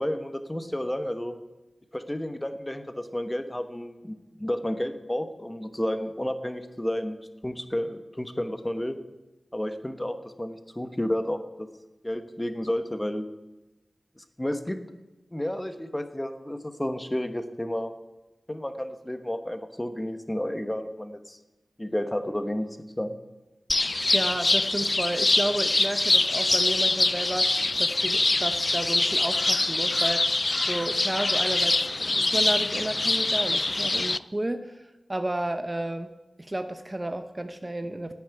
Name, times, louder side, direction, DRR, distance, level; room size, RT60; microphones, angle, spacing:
voice 1, 0.0-1.4 1.9-7.2 7.4-9.0 9.5-11.7 12.0-13.3 14.2-14.8 15.3-17.9 18.5-21.4 21.8-22.7 23.0-23.2, left 1 dB, 15° left, 8 dB, 1.2 m, -31 dB
sound 1, 23.7-34.2, left 2 dB, 40° left, 0.4 m, -24 dB
voice 2, 24.1-30.4 30.6-34.8 35.1-36.1 36.4-38.1, right 1 dB, 25° right, 9 dB, 0.8 m, -32 dB
10.5 x 8.9 x 9.1 m, 1.1 s
wide cardioid pair, 55°, 0 cm